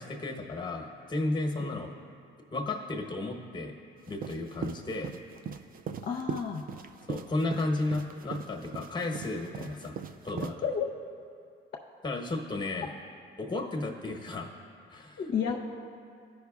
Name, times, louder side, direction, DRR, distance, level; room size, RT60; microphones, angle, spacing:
voice 1, 0.0-1.9 2.5-3.7 4.1-5.1 7.1-10.6 12.0-12.9 13.4-14.5 14.9-15.2, left 2 dB, 20° left, 2 dB, 1.0 m, -33 dB
sound 1, 4.1-10.5, right 6 dB, 45° right, 0.4 m, -39 dB
voice 2, 6.0-6.6 10.6-10.9 15.2-15.6, left 7 dB, 55° left, 0 dB, 0.6 m, -31 dB
13.5 x 5.4 x 2.3 m, 2.2 s
cardioid pair, 90°, 20 cm